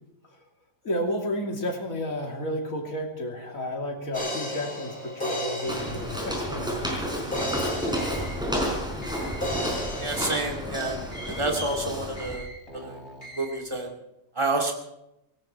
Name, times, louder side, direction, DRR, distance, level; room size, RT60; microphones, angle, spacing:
voice 1, 0.8-7.0, equal, 85° left, 1 dB, 3.2 m, -32 dB
sound 1, 4.1-6.7 7.3-9.0 9.4-10.2, equal, 40° left, 4.6 m, -33 dB
Walk footsteps, 5.7-12.4, equal, 5° right, 4.8 m, -31 dB
sound 2, 7.4-13.8, equal, 55° left, 2.8 m, -43 dB
voice 2, 10.0-11.0 11.3-12.4 12.7-13.0 13.4-13.9 14.4-14.7, right 2 dB, 20° right, 2 dB, 2.4 m, -28 dB
18.0 x 17.5 x 4.4 m, 0.85 s
omnidirectional pair, 1.4 m